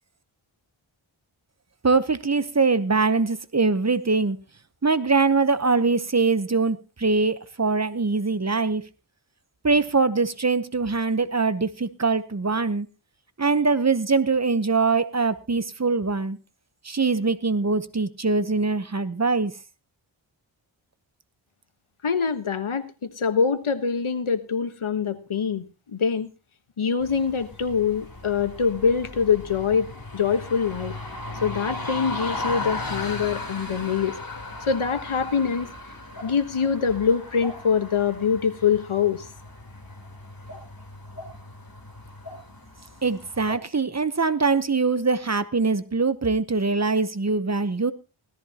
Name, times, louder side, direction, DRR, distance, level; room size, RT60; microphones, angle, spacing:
voice 1, 1.8-4.4 4.8-8.8 9.6-12.9 13.4-16.4 16.8-19.5 43.0-47.9, right 4 dB, 35° right, 0.9 m, -23 dB
voice 2, 22.0-26.3 26.8-30.9 31.4-34.2 34.7-35.7 36.2-39.3, left 6 dB, 90° left, 1.3 m, -24 dB
sound 1, 27.0-43.6, left 2 dB, 45° left, 3.7 m, -37 dB
17.0 x 13.5 x 2.9 m
wide cardioid pair, 55°, 48 cm